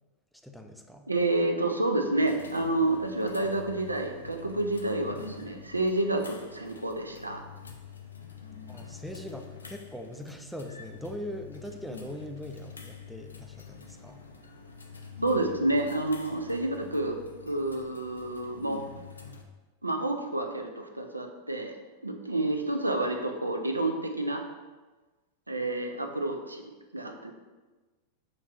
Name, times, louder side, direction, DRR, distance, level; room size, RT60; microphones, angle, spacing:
voice 1, 0.4-1.1 8.7-14.2, equal, ahead, 4 dB, 0.4 m, -41 dB
voice 2, 1.1-7.4 15.2-18.8 19.8-21.7 22.0-24.4 25.5-26.6 26.9-27.3, right 2 dB, 85° right, 5 dB, 0.4 m, -29 dB
sound 1, 2.2-19.4, left 5 dB, 75° left, 0.4 m, -47 dB
6.4 x 3.0 x 2.5 m, 1.3 s
figure-of-eight pair, 90°, 0 cm